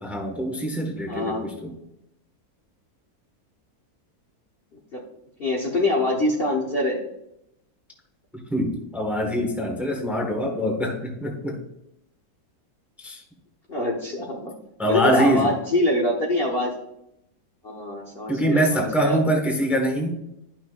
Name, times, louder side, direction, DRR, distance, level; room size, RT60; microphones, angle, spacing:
voice 1, 0.0-1.7 8.5-11.6 13.0-13.2 14.8-15.5 18.3-20.2, equal, ahead, 1 dB, 1.2 m, -24 dB
voice 2, 1.1-1.4 4.9-5.0 5.4-7.0 13.7-14.5 14.8-16.7 17.6-19.2, left 1 dB, 40° left, -2 dB, 1.2 m, -24 dB
11.5 x 6.0 x 2.4 m, 0.80 s
omnidirectional pair, 1.7 m